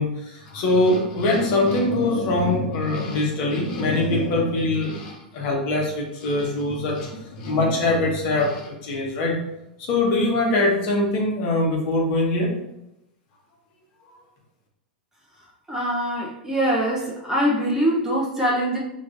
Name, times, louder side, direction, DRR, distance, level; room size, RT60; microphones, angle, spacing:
voice 1, 0.0-9.4 9.8-12.5, left 2 dB, 45° left, -1 dB, 1.3 m, -23 dB
voice 2, 15.7-18.8, equal, 10° right, -3 dB, 1.0 m, -23 dB
6.2 x 3.2 x 2.7 m, 0.84 s
figure-of-eight pair, 95°, 5 cm